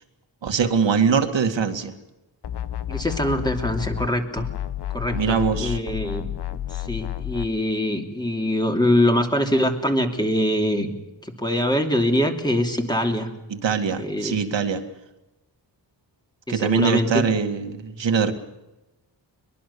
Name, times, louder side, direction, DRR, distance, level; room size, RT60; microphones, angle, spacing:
voice 1, 0.4-1.9 5.1-5.8 13.5-14.8 16.5-18.3, right 6 dB, 80° right, 6 dB, 2.1 m, -22 dB
sound 1, 2.4-4.1 4.4-7.5, left 12 dB, 65° left, 1.0 m, -30 dB
voice 2, 2.9-4.5 4.9-6.2 6.7-10.9 11.4-13.3 14.0-14.4 16.5-17.2, left 1 dB, 10° left, 3 dB, 2.8 m, -23 dB
22.5 x 22.0 x 7.0 m, 1.0 s
wide cardioid pair, 115°, 44 cm